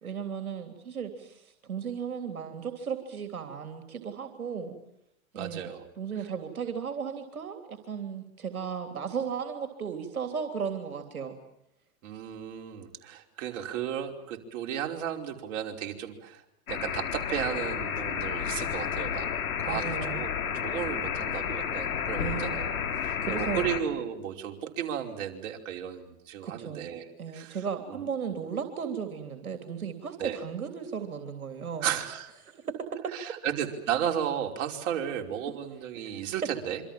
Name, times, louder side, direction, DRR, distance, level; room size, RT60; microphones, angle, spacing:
voice 1, 0.0-4.8 5.3-11.3 19.7-20.3 22.2-22.6 23.2-23.7 26.4-26.9 27.2-32.0 32.4-33.1 36.0-36.2, right 7 dB, 90° right, 6 dB, 3.3 m, -35 dB
voice 2, 5.4-5.8 12.0-16.4 16.7-19.3 19.6-20.3 20.6-22.7 23.0-27.6 27.9-28.0 30.2-30.4 31.8-32.3 33.1-36.8, right 9 dB, 60° right, 2 dB, 5.3 m, -34 dB
sound 1, 16.7-23.8, left 7 dB, 80° left, 4.1 m, -31 dB
27.0 x 25.5 x 7.5 m, 0.82 s
hypercardioid pair, 115°, 42 cm